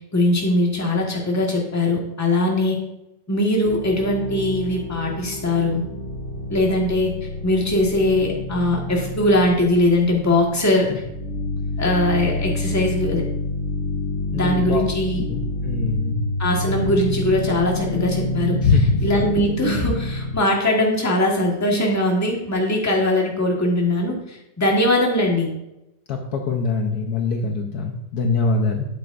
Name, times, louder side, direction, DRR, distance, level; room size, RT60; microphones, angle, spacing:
voice 1, 0.1-2.8 3.3-5.8 6.5-7.1 7.4-11.0 11.8-13.3 14.3-15.2 16.4-18.6 19.0-25.5, left 1 dB, 10° left, -1 dB, 1.3 m, -21 dB
sound 1, 3.6-20.3, left 2 dB, 35° left, 1.4 m, -28 dB
voice 2, 14.3-14.8 15.3-16.2 18.6-19.0 26.1-28.9, left 4 dB, 65° left, 3 dB, 1.2 m, -23 dB
9.1 x 7.8 x 2.6 m, 0.89 s
omnidirectional pair, 2.0 m